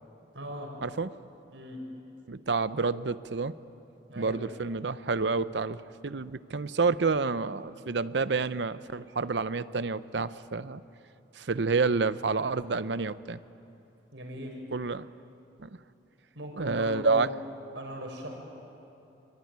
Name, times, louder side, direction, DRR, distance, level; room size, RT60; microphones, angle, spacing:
voice 1, 0.3-0.7 1.5-1.8 4.1-4.5 14.1-14.6 16.3-17.3 17.8-18.4, equal, 85° right, 1 dB, 6.0 m, -39 dB
voice 2, 2.3-3.5 4.2-10.8 11.3-13.4 14.7-15.0 15.6-15.7 16.6-17.3, right 4 dB, 70° right, 14 dB, 0.7 m, -29 dB
25.5 x 24.5 x 9.5 m, 2.8 s
head